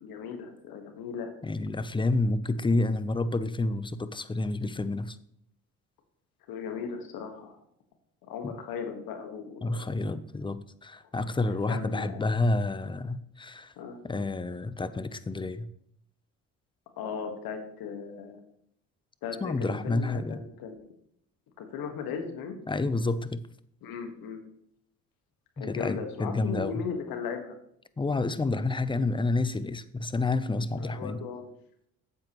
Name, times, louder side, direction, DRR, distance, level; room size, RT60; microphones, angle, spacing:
voice 1, 0.0-1.4 6.5-7.6 8.3-9.9 11.4-12.3 13.8-14.0 17.0-18.4 19.2-20.8 21.6-22.6 23.8-24.4 25.6-27.6 30.7-31.5, left 6 dB, 70° left, 5 dB, 1.7 m, -37 dB
voice 2, 1.4-5.2 8.4-8.6 9.6-13.7 14.0-15.7 19.4-20.4 22.7-23.4 25.6-26.8 28.0-31.2, left 2 dB, 15° left, 14 dB, 0.6 m, -29 dB
8.7 x 7.6 x 3.1 m, 0.71 s
hypercardioid pair, 60°, 37 cm